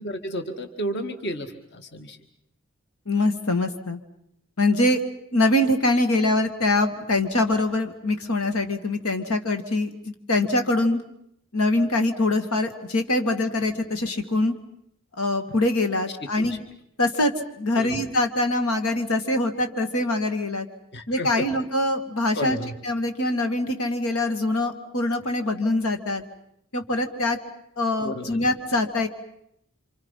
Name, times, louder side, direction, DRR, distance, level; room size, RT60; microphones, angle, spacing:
voice 1, 0.0-2.2 16.4-16.6 17.8-18.0 20.9-21.5 22.4-22.7 28.0-28.4, equal, 50° left, 6 dB, 2.1 m, -32 dB
voice 2, 3.1-4.0 4.6-5.0 5.3-9.9 10.3-11.0 11.5-14.5 15.2-16.6 17.0-17.3 17.6-20.7 21.1-22.6 22.8-26.2 26.7-27.4 27.8-29.1, left 2 dB, 85° left, 6 dB, 2.3 m, -23 dB
29.0 x 26.5 x 5.8 m, 0.75 s
head